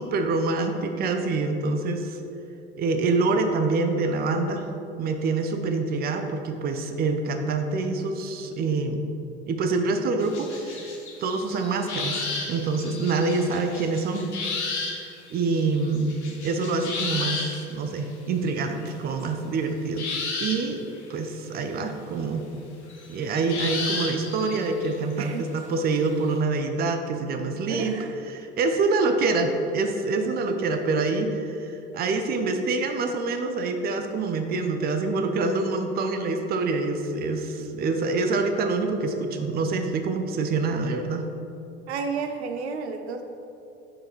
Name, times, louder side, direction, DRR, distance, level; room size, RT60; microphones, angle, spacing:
voice 1, 0.0-2.2 2.7-4.7 5.0-9.0 9.5-14.3 14.7-20.1 20.4-22.5 23.1-28.0 28.3-41.3, right 3 dB, 30° right, 6 dB, 0.6 m, -26 dB
sound 1, 10.2-17.6 18.6-18.9 19.2-19.3 20.0-20.9 22.9-25.6 26.0-26.1, left 3 dB, 75° left, 1.0 m, -33 dB
voice 2, 27.7-28.1 41.9-43.2, right 5 dB, 70° right, 6 dB, 0.5 m, -31 dB
5.9 x 4.7 x 4.5 m, 2.8 s
figure-of-eight pair, 65°, 34 cm